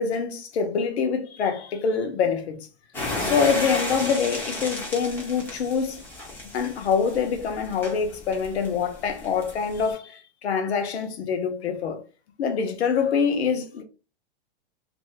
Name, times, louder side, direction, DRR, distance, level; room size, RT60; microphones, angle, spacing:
voice 1, 0.0-2.7 3.2-6.0 6.5-12.0 12.4-13.8, left 6 dB, 80° left, 0.9 m, -25 dB
sound 1, 2.9-9.9, left 2 dB, 5° left, 0.5 m, -34 dB
2.6 x 2.6 x 3.3 m
supercardioid pair, 160°, 33 cm